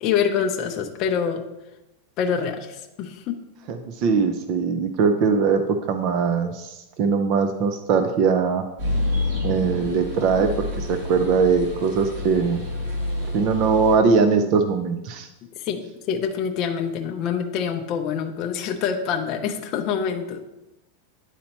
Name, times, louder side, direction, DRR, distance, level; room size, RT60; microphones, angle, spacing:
voice 1, 0.0-1.4 2.2-3.4 15.6-20.4, left 7 dB, 35° left, 3 dB, 0.5 m, -26 dB
voice 2, 3.7-5.6 5.9-8.6 9.4-10.5 10.8-12.6 13.3-15.3, right 5 dB, 40° right, 7 dB, 0.4 m, -21 dB
sound 1, 8.8-14.0, left 2 dB, 65° right, 2.2 m, -28 dB
9.9 x 4.2 x 2.9 m, 0.94 s
supercardioid pair, 165°, 0 cm